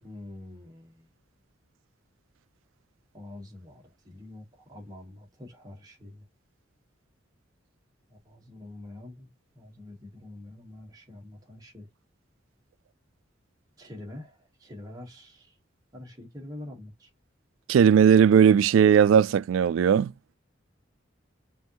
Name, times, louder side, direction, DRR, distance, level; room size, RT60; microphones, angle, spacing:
voice 1, 0.0-1.1 3.1-6.2 8.1-9.3 9.5-11.9 13.8-15.6 15.9-17.1, left 1 dB, 20° right, 1.5 m, -45 dB
voice 2, 17.7-20.1, right 7 dB, 90° right, 0.3 m, -18 dB
5.5 x 2.6 x 3.0 m
head